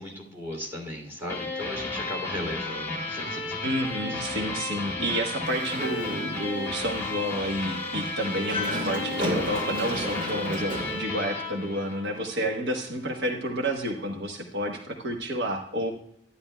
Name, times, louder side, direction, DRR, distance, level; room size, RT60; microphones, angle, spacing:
voice 1, 0.0-3.6 4.0-4.2, left 1 dB, 15° right, -1 dB, 2.8 m, -36 dB
sound 1, 1.3-12.6, left 2 dB, 15° left, 1.8 m, -33 dB
voice 2, 3.6-15.9, equal, 75° right, 3 dB, 1.1 m, -30 dB
Dog, 5.4-6.6 7.0-7.1 8.3-11.0, equal, 50° right, 1.9 m, -32 dB
11.5 x 11.0 x 2.2 m, 0.71 s
head